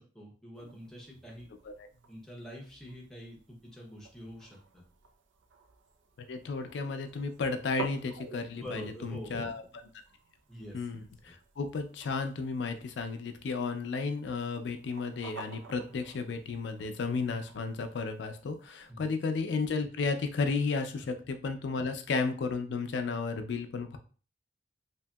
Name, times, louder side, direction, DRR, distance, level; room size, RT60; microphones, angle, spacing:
voice 1, 0.0-1.5 2.1-4.8 8.6-9.5 10.5-10.9 11.2-11.3 18.9-19.1 21.0-21.1, left 1 dB, 5° left, -3 dB, 0.6 m, -46 dB
sound 1, 0.5-18.9, right 3 dB, 80° right, 0.4 m, -51 dB
voice 2, 6.2-9.6 10.7-24.0, left 4 dB, 70° left, 7 dB, 0.4 m, -33 dB
2.8 x 2.7 x 2.2 m, 0.39 s
head